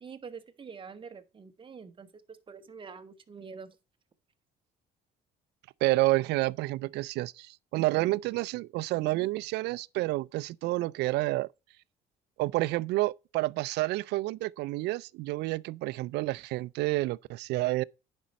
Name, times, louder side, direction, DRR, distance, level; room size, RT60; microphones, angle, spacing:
voice 1, 0.0-3.8, right 5 dB, 30° right, 1.1 m, -46 dB
voice 2, 5.8-11.5 12.4-17.8, right 19 dB, 80° right, 0.4 m, -29 dB
10.0 x 5.3 x 4.1 m
cardioid pair, 110°, 17 cm